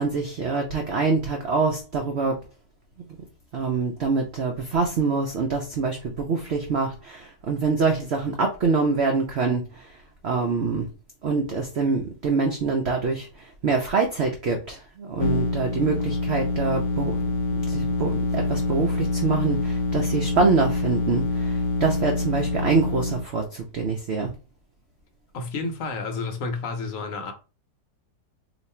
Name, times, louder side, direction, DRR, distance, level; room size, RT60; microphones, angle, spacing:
voice 1, 0.0-2.4 3.5-9.9 10.2-10.9 11.2-17.1 17.6-24.3, right 4 dB, 90° right, 0.5 m, -25 dB
sound 1, 15.2-23.2, left 2 dB, 75° left, 1.2 m, -26 dB
voice 2, 25.3-27.3, left 3 dB, 60° left, 1.0 m, -30 dB
2.9 x 2.5 x 4.2 m
omnidirectional pair, 1.9 m